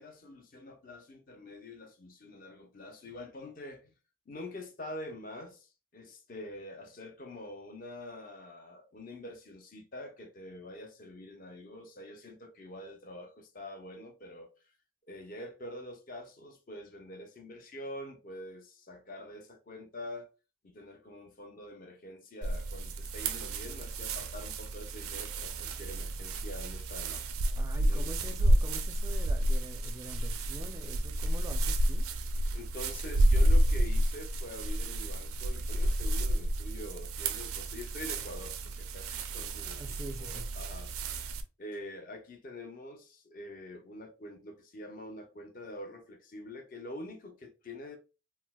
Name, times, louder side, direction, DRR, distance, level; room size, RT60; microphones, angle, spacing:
voice 1, 0.0-3.9 4.3-14.5 15.1-20.3 20.6-27.3 27.9-28.4 32.5-48.0, left 1 dB, 40° left, 0.6 m, -46 dB
sound 1, 22.4-41.4, right 1 dB, 80° right, 0.4 m, -30 dB
voice 2, 27.5-32.0 39.5-40.5, right 1 dB, 15° right, 0.4 m, -45 dB
4.3 x 2.0 x 2.2 m
head